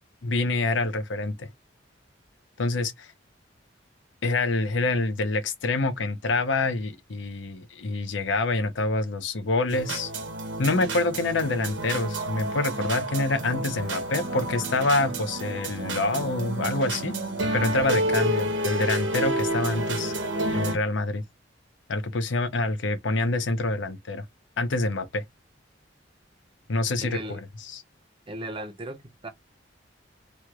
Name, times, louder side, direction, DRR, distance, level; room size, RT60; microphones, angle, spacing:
voice 1, 0.2-1.5 2.6-3.1 4.2-10.1 10.6-17.1 17.5-20.1 20.5-21.2 21.9-24.2 24.6-25.2 26.7-27.8, left 2 dB, 85° left, 0.7 m, -26 dB
sound 1, 9.7-20.7, right 1 dB, 80° right, 1.0 m, -29 dB
voice 2, 27.0-27.4 28.3-29.3, right 1 dB, 30° right, 0.6 m, -36 dB
3.2 x 2.3 x 2.9 m
head